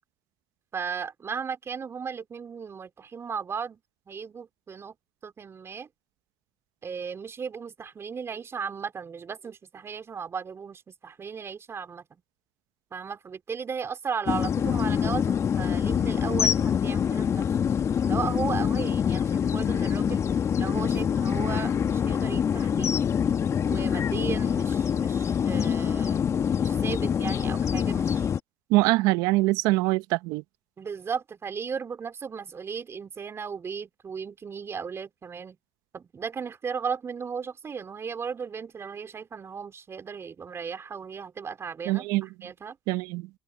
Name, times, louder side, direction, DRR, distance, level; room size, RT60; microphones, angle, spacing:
voice 1, 0.7-3.8 4.1-4.9 5.2-5.9 6.8-12.0 12.9-17.5 18.1-20.2 20.6-22.9 23.6-26.2 26.6-28.3 30.8-35.6 35.9-42.8, right 6 dB, 45° right, 4.3 m, -35 dB
sound 1, 14.3-28.4, left 7 dB, 50° left, 1.8 m, -25 dB
voice 2, 28.7-30.4 41.9-42.3 42.9-43.3, right 21 dB, 75° right, 0.9 m, -23 dB
hypercardioid pair, 50°, 6 cm